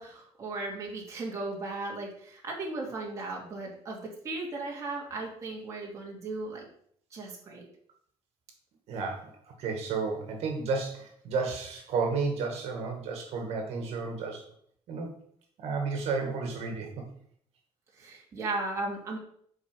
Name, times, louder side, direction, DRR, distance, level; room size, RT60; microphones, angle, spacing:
voice 1, 0.0-6.7 7.1-7.7 18.0-19.2, right 2 dB, 25° right, -3 dB, 2.4 m, -36 dB
voice 2, 8.9-14.5 14.9-15.1 15.6-17.0, right 4 dB, 65° right, 2 dB, 1.9 m, -32 dB
7.5 x 4.9 x 6.7 m, 0.64 s
cardioid pair, 165°, 11 cm